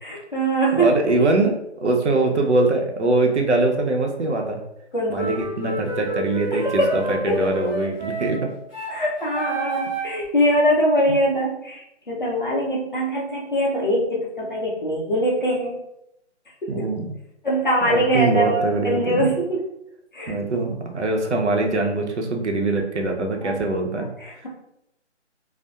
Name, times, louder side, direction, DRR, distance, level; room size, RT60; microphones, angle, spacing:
voice 1, 0.0-0.9 4.9-5.3 6.5-6.9 7.3-7.4 8.9-15.8 17.4-19.6 20.1-20.3 23.4-23.5 24.2-24.5, right 1 dB, 45° left, -4 dB, 0.6 m, -22 dB
voice 2, 0.7-4.6 5.1-8.5 11.1-11.2 16.7-17.1 17.8-19.3 20.3-24.1, right 2 dB, 75° right, 2 dB, 0.6 m, -22 dB
sound 1, 5.1-10.2, right 2 dB, 25° right, 0.7 m, -29 dB
2.6 x 2.0 x 2.3 m, 0.80 s
hypercardioid pair, 180°, 36 cm